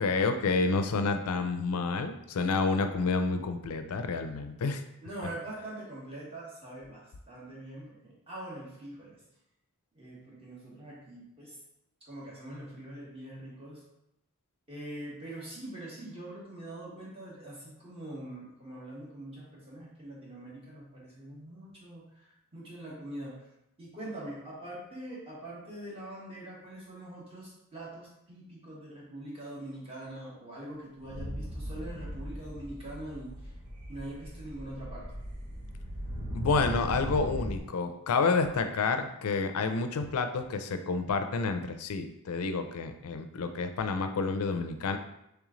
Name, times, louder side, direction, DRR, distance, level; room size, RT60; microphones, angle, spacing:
voice 1, 0.0-4.8 36.3-45.0, left 4 dB, 75° left, 7 dB, 0.4 m, -29 dB
voice 2, 5.0-9.2 9.9-11.6 12.0-13.8 14.7-23.5 23.8-33.5 33.9-35.1, right 1 dB, 25° right, -6 dB, 1.3 m, -43 dB
sound 1, 31.0-37.6, equal, 85° right, 0.8 m, -38 dB
3.3 x 3.1 x 3.7 m, 0.84 s
head